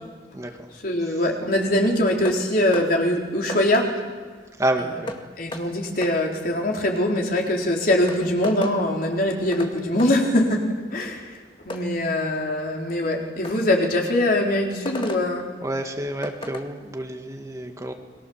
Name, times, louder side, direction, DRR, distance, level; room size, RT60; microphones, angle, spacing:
voice 1, 0.8-3.9 4.8-4.9 5.4-11.2 11.7-15.5, left 1 dB, 55° left, 0 dB, 4.2 m, -22 dB
sound 1, 2.2-2.4 2.7-2.9 3.5-3.6 5.1-5.2 5.5-5.6 6.0-6.2 7.5-7.6 8.1-8.8 9.5-9.7 10.0-10.1 11.7-11.8 13.4-13.6 14.9-15.2 16.2-16.7, left 1 dB, 30° left, 2.0 m, -33 dB
voice 2, 4.6-5.1 15.6-17.9, right 1 dB, 20° right, 4 dB, 1.8 m, -28 dB
30.0 x 22.5 x 7.3 m, 1.4 s
head